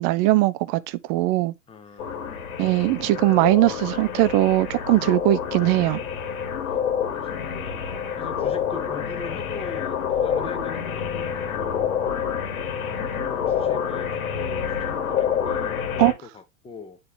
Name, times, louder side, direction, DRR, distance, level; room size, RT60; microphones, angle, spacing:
voice 1, 0.0-1.5 2.6-6.0 16.0-16.1, right 17 dB, 25° right, 0.4 m, -20 dB
voice 2, 1.7-2.8 6.7-11.9 12.7-17.0, left 4 dB, 15° left, 1.1 m, -42 dB
sound 1, 2.0-16.1, left 8 dB, 70° left, 2.2 m, -28 dB
9.7 x 4.0 x 3.3 m
hypercardioid pair, 110°, 43 cm